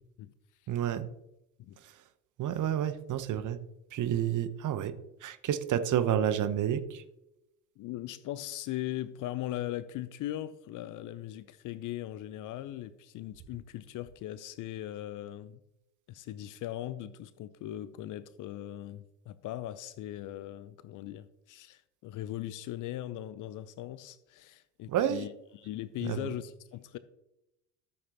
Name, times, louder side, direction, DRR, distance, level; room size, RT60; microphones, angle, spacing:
voice 1, 0.7-1.1 2.4-3.6 3.9-4.9 5.2-7.0 24.9-25.2 26.0-26.3, right 10 dB, 35° right, 12 dB, 0.9 m, -29 dB
voice 2, 7.8-15.6 16.1-27.0, left 13 dB, 40° left, 15 dB, 0.6 m, -39 dB
13.5 x 7.7 x 2.9 m, 0.87 s
figure-of-eight pair, 70°, 50 cm